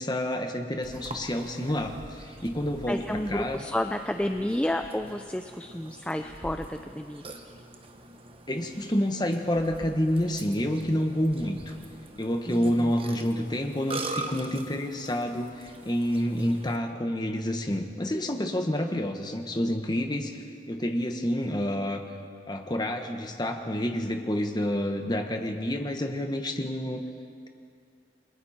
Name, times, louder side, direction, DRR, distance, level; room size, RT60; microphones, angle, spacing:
voice 1, 0.0-3.6 8.5-11.7 12.2-20.4 20.7-22.0 22.5-27.0, equal, 25° left, 4 dB, 1.5 m, -28 dB
Burping eructation, 0.8-16.8, right 2 dB, 30° right, 1.3 m, -43 dB
voice 2, 2.9-7.2 12.4-12.9, left 1 dB, 5° left, 6 dB, 0.5 m, -31 dB
29.5 x 22.0 x 4.4 m, 2.3 s
head